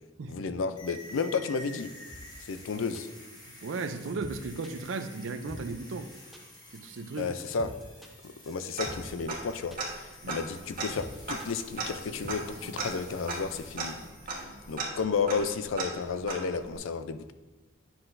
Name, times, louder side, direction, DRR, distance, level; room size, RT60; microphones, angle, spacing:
voice 1, 0.3-1.9 2.5-3.1 7.2-7.7 8.2-14.0 14.7-17.3, left 5 dB, 80° left, 11 dB, 0.4 m, -32 dB
sound 1, 0.8-14.8, equal, 20° left, 1.4 m, -50 dB
sound 2, 2.1-12.3, equal, ahead, 0.7 m, -46 dB
voice 2, 3.6-6.1 6.7-7.3 10.2-10.4, right 3 dB, 70° right, 10 dB, 0.5 m, -36 dB
Tick-tock, 8.8-9.5 9.8-9.9 10.2-16.8, right 3 dB, 45° right, 1.4 m, -37 dB
9.6 x 5.9 x 2.6 m, 1.2 s
head